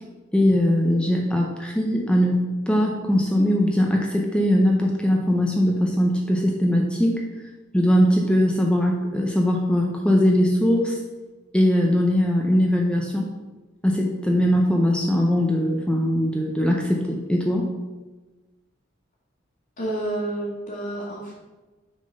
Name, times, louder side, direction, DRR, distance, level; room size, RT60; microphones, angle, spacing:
voice 1, 0.3-7.2 7.7-11.0 11.5-13.3 13.8-17.7, equal, 5° left, 0 dB, 0.5 m, -21 dB
voice 2, 19.8-21.3, right 1 dB, 40° left, -7 dB, 1.5 m, -29 dB
6.6 x 3.8 x 5.2 m, 1.2 s
head